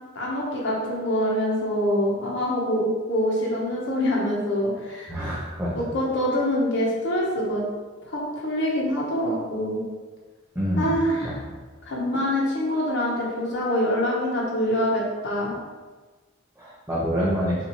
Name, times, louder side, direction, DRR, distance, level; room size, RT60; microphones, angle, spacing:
voice 1, 0.1-5.1 5.7-7.6 8.1-9.8 10.8-11.4 11.9-15.5, equal, 60° left, -4 dB, 1.0 m, -25 dB
voice 2, 5.1-5.7 10.5-10.9 11.2-11.4 16.6-17.6, equal, 15° right, -8 dB, 0.8 m, -26 dB
5.8 x 2.7 x 3.0 m, 1.3 s
head